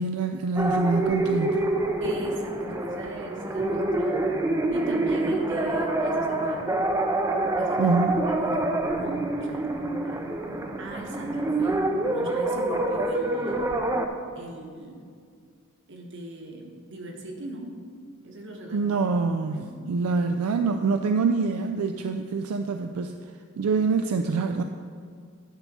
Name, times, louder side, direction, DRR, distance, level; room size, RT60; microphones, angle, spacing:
voice 1, 0.0-1.6 7.8-8.2 18.7-23.2 23.6-24.6, right 4 dB, 80° right, 6 dB, 0.4 m, -25 dB
sound 1, 0.6-14.1, right 2 dB, 15° right, 0.4 m, -26 dB
voice 2, 2.0-6.7 7.6-8.0 8.2-13.7 14.3-15.0 15.9-17.7 18.2-18.9 19.5-19.7, right 1 dB, 55° right, 1 dB, 1.2 m, -40 dB
10.5 x 4.0 x 6.1 m, 2.1 s
head